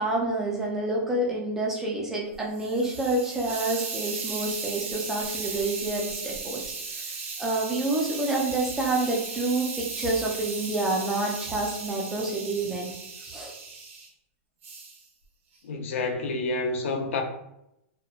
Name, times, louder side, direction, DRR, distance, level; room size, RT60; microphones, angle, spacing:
voice 1, 0.0-6.6 6.9-12.9 13.2-13.5, right 2 dB, 5° right, -3 dB, 0.3 m, -28 dB
Hiss, 2.3-14.1 14.6-15.0, right 4 dB, 75° right, 0.7 m, -36 dB
voice 2, 15.6-17.2, left 3 dB, 70° left, 4 dB, 0.5 m, -28 dB
2.8 x 2.1 x 2.3 m, 0.82 s
supercardioid pair, 170°, 7 cm